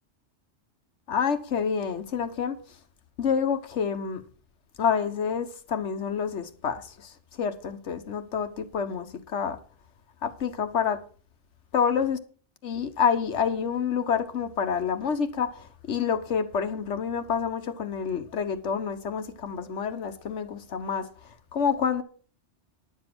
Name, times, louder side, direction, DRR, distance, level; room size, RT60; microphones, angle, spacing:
voice 1, 1.1-2.6 3.2-4.2 4.8-9.6 10.2-11.0 11.7-12.2 12.6-21.0 21.5-22.0, left 7 dB, 80° left, 1.4 m, -28 dB
11.0 x 7.4 x 6.1 m
omnidirectional pair, 1.2 m